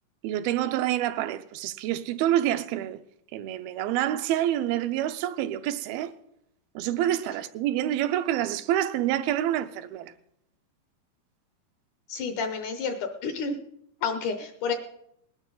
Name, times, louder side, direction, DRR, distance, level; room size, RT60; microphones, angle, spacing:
voice 1, 0.2-3.0 3.3-6.1 6.8-10.1, right 12 dB, 80° right, 2.5 m, -27 dB
voice 2, 12.1-13.6 14.0-14.7, left 5 dB, 70° left, 2.0 m, -30 dB
20.0 x 12.0 x 3.9 m
omnidirectional pair, 4.4 m